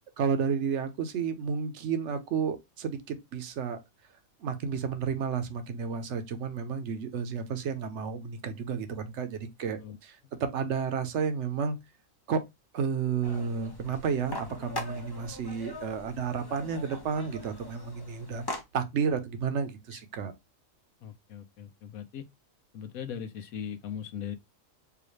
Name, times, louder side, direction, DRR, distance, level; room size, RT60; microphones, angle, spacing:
voice 1, 0.2-3.8 4.4-11.8 12.3-12.4 12.7-18.4 18.7-20.3, right 6 dB, 60° right, 1.0 m, -31 dB
sound 1, 13.2-18.6, left 1 dB, 25° left, 0.6 m, -41 dB
voice 2, 21.0-22.2 22.7-24.3, left 8 dB, 85° left, 1.2 m, -39 dB
4.7 x 2.5 x 3.2 m
omnidirectional pair, 1.5 m